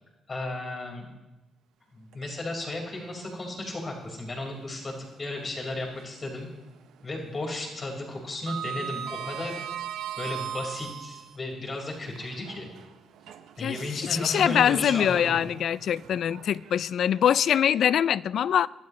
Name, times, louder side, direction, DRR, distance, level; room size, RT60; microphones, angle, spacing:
voice 1, 0.3-1.1 1.9-6.5 7.0-9.6 10.2-12.7 13.6-15.5, left 2 dB, 35° left, 4.9 m, -34 dB
Sliding door, 2.1-3.1 3.5-3.6 5.3-6.4 6.6-7.0 7.3-11.4 12.0-17.2, right 9 dB, 80° right, 0.8 m, -39 dB
voice 2, 13.6-18.7, left 9 dB, 65° left, 0.3 m, -24 dB
23.5 x 12.5 x 3.2 m
cardioid pair, 90°, 0 cm